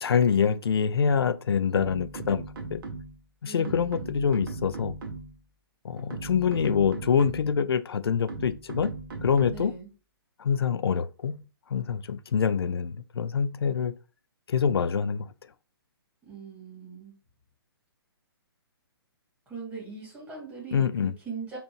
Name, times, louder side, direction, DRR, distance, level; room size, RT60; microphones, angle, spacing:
voice 1, 0.0-2.8 3.4-5.0 5.8-8.9 9.2-9.7 10.4-11.4 11.7-13.9 14.5-15.3 20.7-21.1, left 7 dB, 70° left, 0.4 m, -25 dB
sound 1, 1.7-3.3 3.7-5.5 6.0-7.6 8.3-9.8, right 3 dB, 55° right, 0.9 m, -38 dB
voice 2, 3.5-4.1 9.5-9.9 16.2-17.1 19.5-21.6, right 5 dB, 10° right, 1.9 m, -41 dB
4.3 x 2.5 x 3.1 m
figure-of-eight pair, 130°, 13 cm